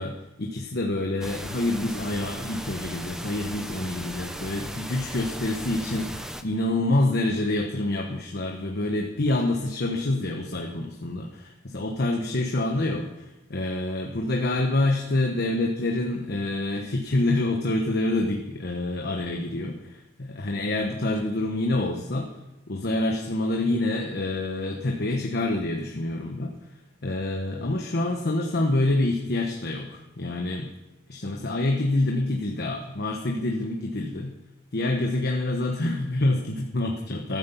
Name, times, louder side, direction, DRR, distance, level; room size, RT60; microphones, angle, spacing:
voice 1, 0.0-22.3 22.7-26.5 27.0-30.7 31.1-34.3 34.7-37.4, left 2 dB, 55° left, 1 dB, 1.2 m, -27 dB
sound 1, 1.2-6.4, equal, 5° right, 0.7 m, -37 dB
13.5 x 9.7 x 6.9 m, 1.0 s
head